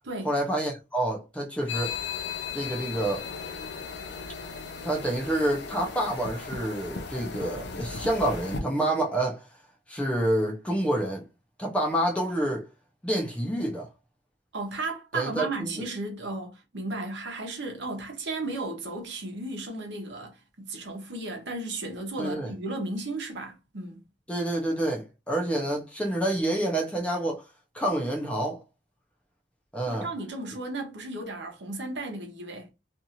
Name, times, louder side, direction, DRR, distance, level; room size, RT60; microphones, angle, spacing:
voice 1, 0.2-2.0 2.5-3.2 4.8-9.5 9.9-11.3 11.6-12.7 13.0-13.9 15.1-15.5 22.2-22.5 24.3-27.4 27.7-28.6 29.7-30.1, right 1 dB, 5° left, 0.5 m, -28 dB
sound 1, 1.7-8.6, left 5 dB, 60° left, 0.5 m, -36 dB
voice 2, 14.5-24.0 29.8-32.7, right 2 dB, 70° right, 0.9 m, -34 dB
2.6 x 2.4 x 2.8 m
head